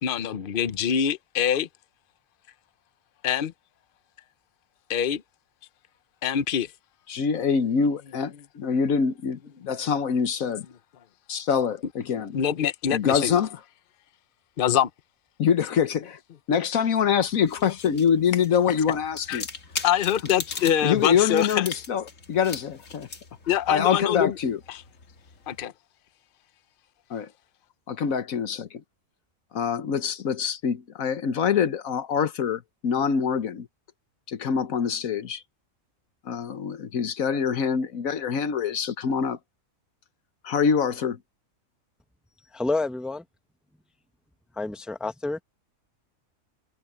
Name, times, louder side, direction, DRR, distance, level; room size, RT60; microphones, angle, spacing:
voice 1, 0.0-1.7 3.2-3.5 4.9-5.2 6.2-6.7 12.3-13.4 14.6-14.9 19.3-19.4 19.8-21.5 23.5-24.3 25.5-25.7, left 9 dB, 45° left, 0.9 m, -24 dB
voice 2, 7.1-10.7 11.3-12.4 12.9-13.5 15.4-16.2 16.5-19.5 20.8-23.1 23.5-24.6 27.1-27.3 27.9-28.8 29.5-33.7 34.3-35.4 36.2-39.4 40.4-41.2, left 7 dB, 85° left, 1.5 m, -25 dB
sound 1, 17.2-25.7, left 4 dB, 65° left, 2.3 m, -40 dB
voice 3, 42.5-43.2 44.5-45.4, left 2 dB, ahead, 0.8 m, -28 dB
omnidirectional pair, 1.4 m